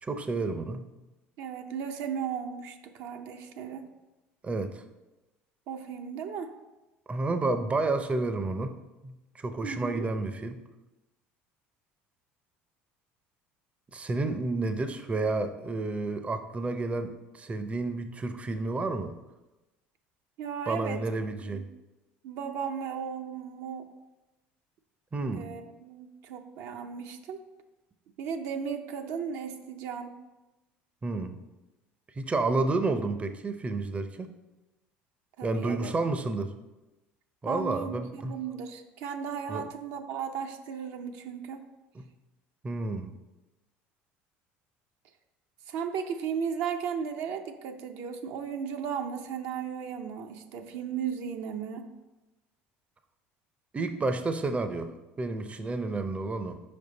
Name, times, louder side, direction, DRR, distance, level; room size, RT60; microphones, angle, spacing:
voice 1, 0.0-0.8 4.4-4.8 7.1-8.7 9.0-10.6 13.9-19.1 20.7-21.6 25.1-25.5 31.0-31.4 32.2-34.3 35.4-36.5 37.4-38.4 39.5-39.6 41.9-42.1 42.6-43.1 53.7-56.6, right 3 dB, 25° right, 8 dB, 0.5 m, -30 dB
voice 2, 1.4-3.9 5.7-6.5 9.6-10.1 20.4-21.0 21.5-21.7 22.2-23.9 25.3-27.4 28.2-30.1 35.4-35.9 37.5-41.6 45.7-51.9, right 7 dB, 70° right, 5 dB, 0.6 m, -35 dB
5.2 x 5.0 x 3.9 m, 1.0 s
supercardioid pair, 80°, 5 cm